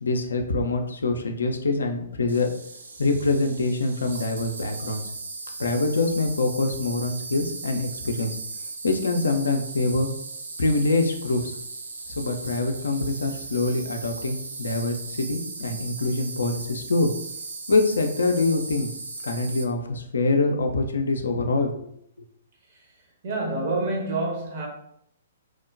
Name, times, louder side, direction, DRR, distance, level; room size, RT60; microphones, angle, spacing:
voice 1, 0.0-2.5 3.0-5.1 5.6-8.4 8.8-10.1 10.6-11.5 12.2-17.1 17.7-18.9 19.2-21.9, left 3 dB, 65° left, 0.4 m, -25 dB
Insect, 2.3-19.6, right 3 dB, 65° right, 0.4 m, -37 dB
voice 2, 23.2-24.7, right 2 dB, 40° right, 0.9 m, -27 dB
3.1 x 2.1 x 2.4 m
figure-of-eight pair, 120°, 0 cm